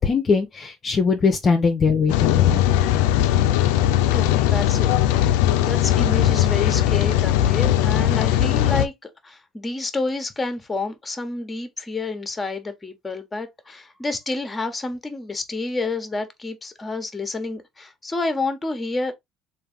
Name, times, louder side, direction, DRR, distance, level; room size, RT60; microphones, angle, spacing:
voice 1, 0.0-2.6, left 5 dB, 35° left, 0.7 m, -21 dB
Rain, 2.1-8.9, left 12 dB, 85° left, 0.4 m, -19 dB
voice 2, 4.1-4.9 5.2-19.1, left 3 dB, 20° left, 1.0 m, -29 dB
3.4 x 2.6 x 3.5 m
supercardioid pair, 90°, 0 cm